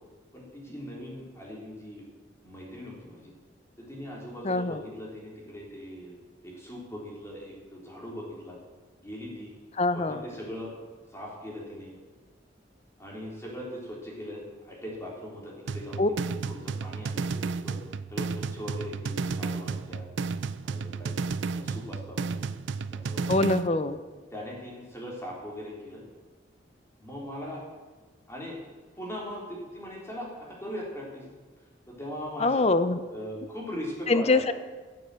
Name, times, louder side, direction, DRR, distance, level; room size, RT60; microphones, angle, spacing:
voice 1, 0.3-2.0 2.4-3.3 3.8-6.2 6.4-8.6 9.0-9.5 9.9-10.7 11.1-11.9 13.0-17.8 18.1-20.1 20.6-22.5 22.9-23.5 24.3-26.0 27.0-27.6 28.3-28.6 29.0-31.2 31.9-32.7 33.1-34.4, equal, 15° left, -3 dB, 3.5 m, -40 dB
voice 2, 4.4-4.8 9.8-10.2 16.0-16.1 23.3-24.0 32.4-33.0 34.1-34.5, left 2 dB, 35° left, 12 dB, 0.7 m, -24 dB
sound 1, 15.7-23.7, right 4 dB, 80° right, 0.5 m, -32 dB
15.0 x 7.0 x 7.6 m, 1.3 s
head